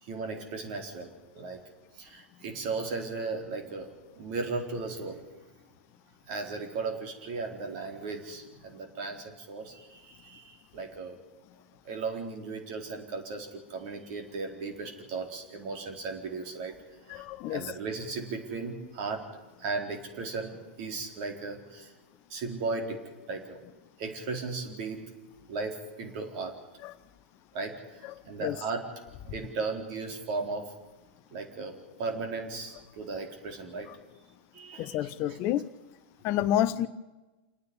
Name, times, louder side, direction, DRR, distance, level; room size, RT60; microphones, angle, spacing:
voice 1, 0.0-1.6 1.9-3.9 4.2-5.2 6.3-11.2 11.8-16.7 17.1-19.3 19.6-21.9 22.3-23.6 24.0-25.0 25.5-26.6 27.5-28.9 29.2-30.7 31.3-33.9 34.5-35.4, right 4 dB, 50° right, 3 dB, 4.3 m, -36 dB
voice 2, 17.1-17.7 26.8-26.9 28.4-28.6 34.8-35.7 36.2-36.9, left 12 dB, 40° left, 15 dB, 0.7 m, -29 dB
28.0 x 9.5 x 9.9 m, 1.1 s
hypercardioid pair, 100°, 6 cm